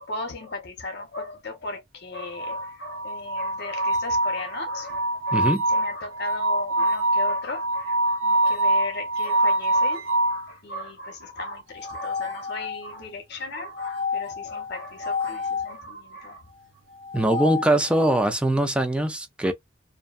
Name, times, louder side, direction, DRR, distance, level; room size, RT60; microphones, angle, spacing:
voice 1, 0.0-16.4, left 2 dB, 60° left, 0.8 m, -36 dB
sound 1, 2.4-10.5 11.7-13.0 13.7-15.7 16.9-18.3, right 1 dB, 75° right, 0.5 m, -26 dB
voice 2, 5.3-5.6 17.1-19.5, right 1 dB, 5° right, 0.3 m, -22 dB
2.6 x 2.2 x 2.3 m
head